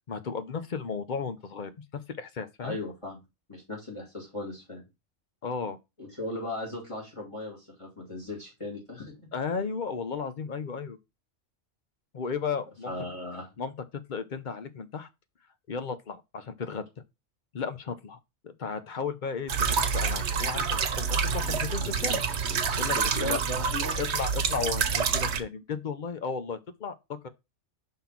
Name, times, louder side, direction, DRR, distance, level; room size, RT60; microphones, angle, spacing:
voice 1, 0.1-2.8 5.4-5.8 9.3-11.0 12.1-12.9 13.6-15.1 15.7-16.9 17.5-18.2 18.4-23.4 24.0-27.3, left 5 dB, 50° left, 0.8 m, -34 dB
voice 2, 2.6-3.2 3.5-4.8 6.0-9.3 12.9-13.5 22.9-24.0, left 1 dB, 30° left, 2.4 m, -37 dB
sound 1, 19.5-25.4, right 6 dB, 80° right, 1.1 m, -27 dB
5.5 x 3.7 x 5.8 m
omnidirectional pair, 1.1 m